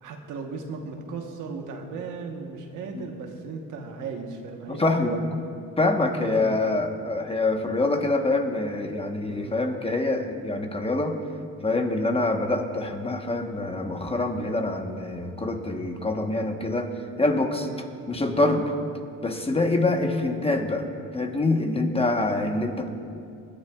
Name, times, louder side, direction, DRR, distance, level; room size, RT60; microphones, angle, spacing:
voice 1, 0.0-5.3 5.7-6.5 9.3-9.6 17.6-17.9 19.6-19.8 22.1-22.3, right 4 dB, 85° right, 3 dB, 1.2 m, -37 dB
voice 2, 4.7-5.2 5.8-11.2 11.6-17.7 18.1-18.7 19.2-20.9 21.1-22.9, left 2 dB, 20° left, 4 dB, 1.1 m, -25 dB
23.5 x 10.5 x 2.4 m, 2.4 s
cardioid pair, 90°, 30 cm